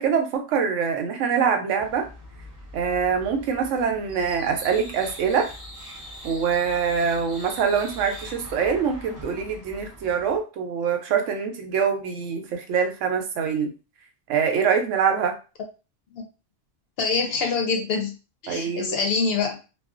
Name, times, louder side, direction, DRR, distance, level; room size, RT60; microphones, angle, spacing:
voice 1, 0.0-2.1 2.7-5.5 6.2-13.7 14.3-15.4 18.5-18.9, right 6 dB, 90° right, 5 dB, 0.9 m, -24 dB
sound 1, 1.8-10.4, equal, 20° right, 0.6 m, -42 dB
voice 2, 17.0-18.2 18.4-19.6, left 4 dB, 65° left, 2 dB, 0.7 m, -25 dB
2.4 x 2.3 x 2.4 m, 0.32 s
omnidirectional pair, 1.2 m